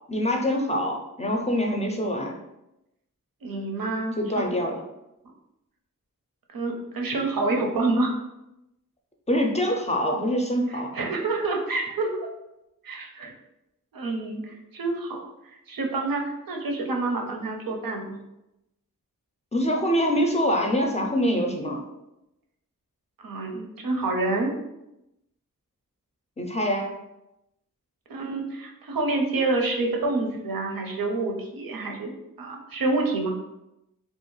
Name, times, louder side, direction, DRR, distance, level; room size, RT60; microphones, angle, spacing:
voice 1, 0.1-2.4 4.2-4.8 9.3-10.9 19.5-21.8 26.4-26.9, equal, 20° left, 1 dB, 0.4 m, -25 dB
voice 2, 3.4-4.5 6.5-8.1 10.7-12.1 12.8-13.3 13.9-15.2 15.5-18.2 23.2-24.5 28.1-33.3, right 2 dB, 90° right, 2 dB, 0.5 m, -28 dB
2.5 x 2.3 x 3.0 m, 0.90 s
wide cardioid pair, 60°, 34 cm